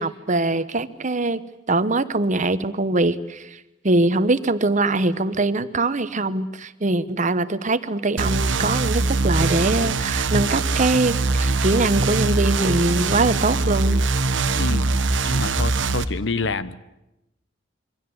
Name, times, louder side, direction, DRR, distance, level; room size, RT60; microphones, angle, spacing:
voice 1, 0.0-1.4 1.7-14.0, right 2 dB, 40° right, 13 dB, 1.1 m, -22 dB
sound 1, 8.2-16.0, right 3 dB, 70° right, 1.4 m, -22 dB
voice 2, 14.5-14.9 15.2-16.8, left 3 dB, 65° left, 15 dB, 1.1 m, -27 dB
26.5 x 23.5 x 7.9 m, 0.92 s
head